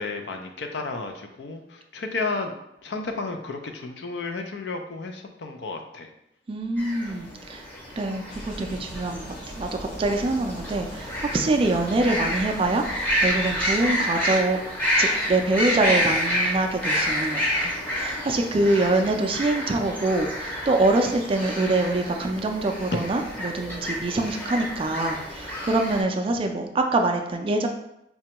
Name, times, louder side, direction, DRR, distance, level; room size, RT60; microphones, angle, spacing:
voice 1, 0.0-2.6 2.8-6.1 7.1-7.3, left 3 dB, 70° left, 5 dB, 0.4 m, -32 dB
voice 2, 6.5-7.6 8.0-9.2 9.5-14.6 15.0-27.7, right 2 dB, 30° right, 4 dB, 0.3 m, -25 dB
sound 1, 6.8-26.0, equal, 10° left, 0.7 m, -29 dB
sound 2, 8.3-13.9, equal, 45° left, 0.9 m, -41 dB
4.1 x 2.2 x 2.8 m, 0.82 s
head